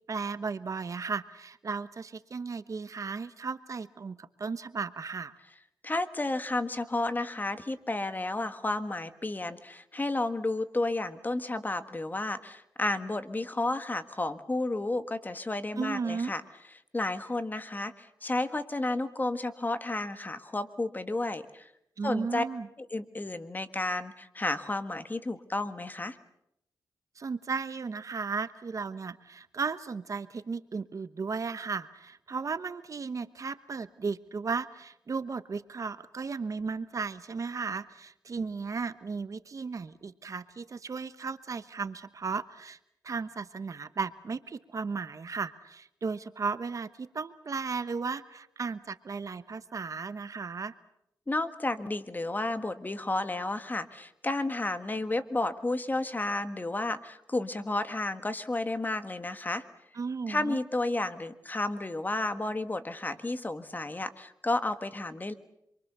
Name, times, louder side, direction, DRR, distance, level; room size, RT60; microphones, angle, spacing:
voice 1, 0.1-5.4 15.8-16.3 22.0-22.7 27.2-42.8 43.0-50.7 59.9-60.6, right 5 dB, 50° right, 13 dB, 1.1 m, -35 dB
voice 2, 5.8-16.4 16.9-21.7 22.0-22.4 22.8-26.2 51.3-59.6 60.3-65.3, left 2 dB, 25° left, 10 dB, 1.6 m, -32 dB
26.5 x 24.0 x 6.8 m, 0.79 s
cardioid pair, 80°, 7 cm